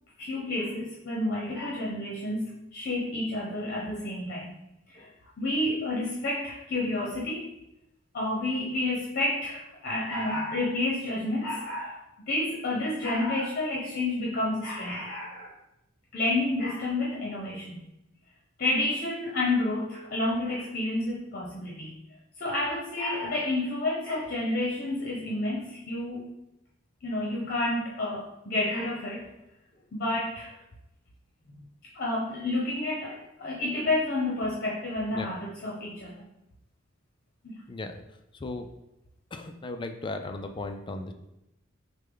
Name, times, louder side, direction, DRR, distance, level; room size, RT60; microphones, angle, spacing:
voice 1, 0.2-4.6 4.9-5.1 5.4-7.5 8.1-12.0 12.3-15.5 16.1-17.8 18.6-21.9 22.4-26.2 27.0-29.2 29.9-30.5 31.9-36.2 37.4-37.6, left 2 dB, 45° left, -4 dB, 0.9 m, -30 dB
voice 2, 37.7-38.0 38.3-38.7 39.3-41.1, left 2 dB, 25° left, 6 dB, 0.4 m, -36 dB
6.1 x 2.2 x 3.9 m, 0.87 s
head